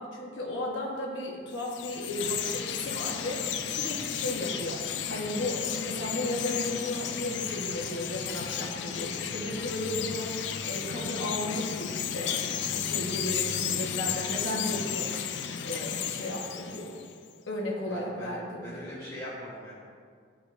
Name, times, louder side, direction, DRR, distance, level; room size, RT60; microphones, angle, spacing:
voice 1, 0.0-4.8 5.1-15.1 15.6-16.9 17.5-18.9, left 1 dB, 80° left, -2 dB, 1.0 m, -35 dB
Chirp tweet, 1.5-17.1, left 8 dB, 60° left, 0.4 m, -33 dB
voice 2, 17.9-19.7, equal, 20° left, -10 dB, 1.1 m, -42 dB
11.0 x 4.7 x 2.5 m, 2.1 s
head